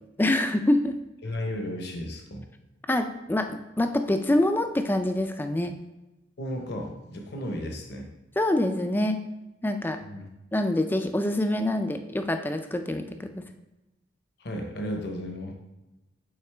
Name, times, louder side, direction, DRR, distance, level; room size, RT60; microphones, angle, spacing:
voice 1, 0.2-1.0 2.9-5.7 8.4-9.2 9.6-10.0 10.5-13.4, left 1 dB, 10° left, 7 dB, 0.3 m, -25 dB
voice 2, 1.2-2.5 6.4-8.1 10.0-10.3 14.4-15.5, left 1 dB, 60° left, 2 dB, 0.9 m, -34 dB
8.5 x 3.9 x 3.3 m, 1.0 s
head